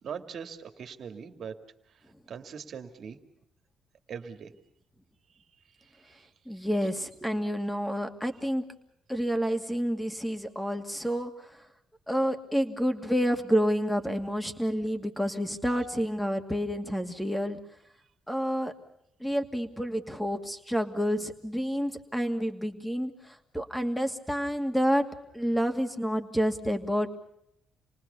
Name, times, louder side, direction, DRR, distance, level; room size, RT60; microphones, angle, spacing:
voice 1, 0.0-1.5 2.3-3.2 4.1-4.5 6.0-6.3, right 7 dB, 60° right, 7 dB, 2.3 m, -41 dB
voice 2, 6.5-8.6 9.1-11.6 12.1-17.6 18.3-18.7 19.2-25.1 25.3-27.1, equal, 5° left, 6 dB, 2.4 m, -29 dB
28.0 x 19.5 x 7.0 m, 0.74 s
cardioid pair, 90°, 0 cm